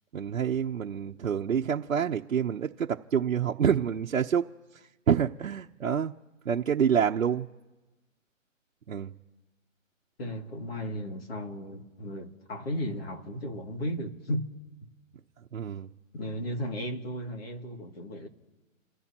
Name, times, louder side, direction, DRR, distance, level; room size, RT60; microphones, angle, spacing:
voice 1, 0.1-4.5 4.7-6.1 6.4-7.5 8.9-9.1 15.5-15.9, right 8 dB, 75° right, 1.0 m, -27 dB
voice 2, 10.2-14.5 16.1-18.3, equal, 50° left, 2.5 m, -35 dB
29.5 x 15.5 x 3.0 m
hypercardioid pair, 170°, 40 cm